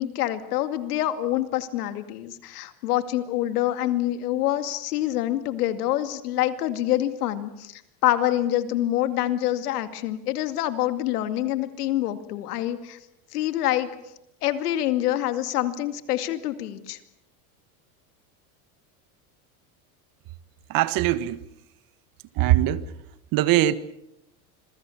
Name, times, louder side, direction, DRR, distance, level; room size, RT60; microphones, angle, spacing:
voice 1, 0.0-13.0 13.3-13.9 14.4-17.0, left 13 dB, 90° left, 2.4 m, -26 dB
voice 2, 20.7-21.4 22.3-22.9 23.3-23.7, right 14 dB, 50° right, 1.5 m, -21 dB
26.5 x 22.5 x 7.1 m
supercardioid pair, 120°, 44 cm